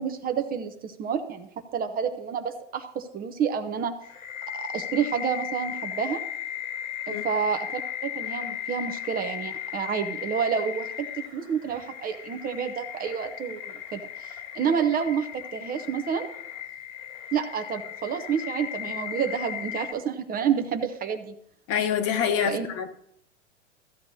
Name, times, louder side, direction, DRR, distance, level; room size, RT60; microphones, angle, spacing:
voice 1, 0.0-3.9 4.5-6.2 7.1-16.3 17.3-21.3 22.5-22.7, right 7 dB, 25° right, 6 dB, 0.7 m, -29 dB
sound 1, 4.0-19.9, left 10 dB, 80° left, 2.6 m, -36 dB
voice 2, 21.7-22.9, left 8 dB, 40° left, 7 dB, 1.2 m, -26 dB
14.5 x 8.9 x 2.7 m, 0.71 s
hypercardioid pair, 110°, 37 cm